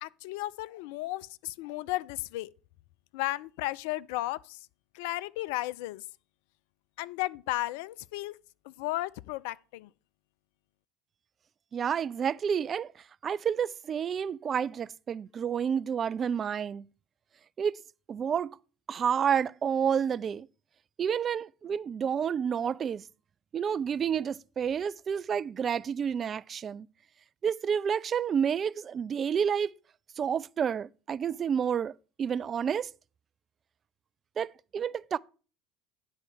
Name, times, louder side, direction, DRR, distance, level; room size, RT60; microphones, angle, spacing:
voice 1, 0.0-2.5 3.1-4.6 4.9-6.0 7.0-8.4 8.7-9.9, left 17 dB, 65° left, 0.3 m, -34 dB
voice 2, 11.7-12.9 13.2-16.9 17.6-17.8 18.1-18.6 18.9-20.5 21.0-23.0 23.5-26.9 27.4-29.7 30.2-31.9 32.2-32.9 34.4-35.2, right 7 dB, 35° right, 0.3 m, -29 dB
9.7 x 4.2 x 6.4 m
figure-of-eight pair, 65°, 0 cm